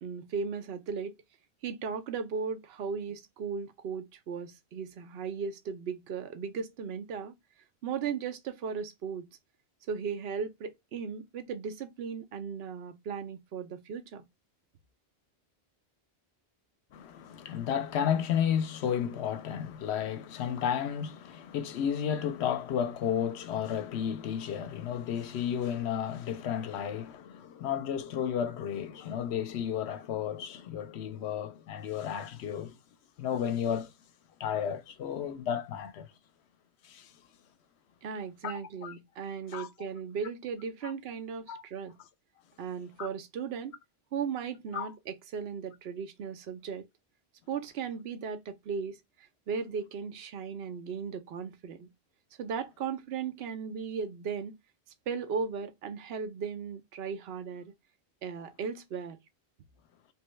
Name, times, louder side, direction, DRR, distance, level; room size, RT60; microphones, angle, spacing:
voice 1, 0.0-1.1 1.6-7.3 7.8-9.3 9.9-14.2 38.0-41.9 42.6-43.8 44.1-46.9 47.5-51.9 52.4-54.5 55.1-57.7 58.2-59.2, right 6 dB, 70° right, 0.9 m, -36 dB
voice 2, 16.9-32.7 33.2-33.9 34.4-36.1 36.8-37.1 38.4-38.9 39.5-39.7 40.8-40.9 41.5-41.6 43.0-43.1 44.7-44.9, left 8 dB, 80° left, 0.8 m, -32 dB
3.4 x 2.2 x 3.0 m
omnidirectional pair, 1.1 m